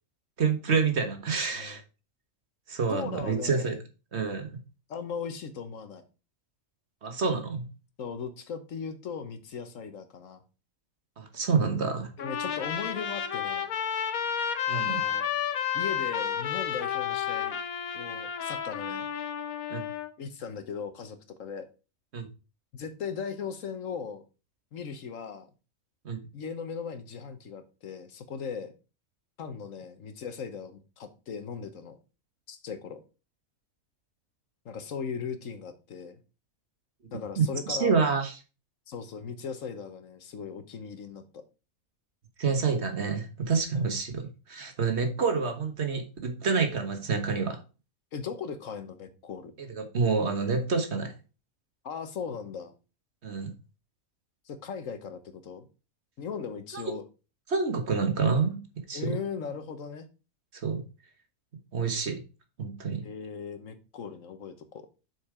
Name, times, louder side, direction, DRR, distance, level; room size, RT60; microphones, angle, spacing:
voice 1, 0.4-1.8 2.7-3.7 4.1-4.5 7.0-7.7 11.2-12.1 14.7-15.0 19.7-19.8 22.1-22.2 26.0-26.2 37.4-38.3 42.4-47.6 49.6-51.1 53.2-53.5 56.7-56.8 57.5-58.6 58.9-59.2 60.6-60.8 61.7-62.2 62.6-63.0, right 5 dB, 50° right, 6 dB, 1.5 m, -28 dB
voice 2, 2.9-3.8 4.9-6.0 8.0-10.4 12.2-13.7 14.7-15.3 15.7-17.6 17.9-19.1 20.2-21.6 22.7-24.2 24.7-25.5 26.3-28.7 29.4-32.0 32.5-33.0 34.6-36.2 37.1-37.9 38.9-41.4 43.7-43.9 48.1-49.5 51.8-52.7 54.5-55.7 56.2-57.0 58.9-60.1 63.0-64.9, left 6 dB, 70° left, 9 dB, 1.3 m, -38 dB
Trumpet, 12.2-20.1, left 8 dB, 85° left, 1.3 m, -31 dB
7.1 x 4.6 x 4.9 m, 0.32 s
omnidirectional pair, 1.5 m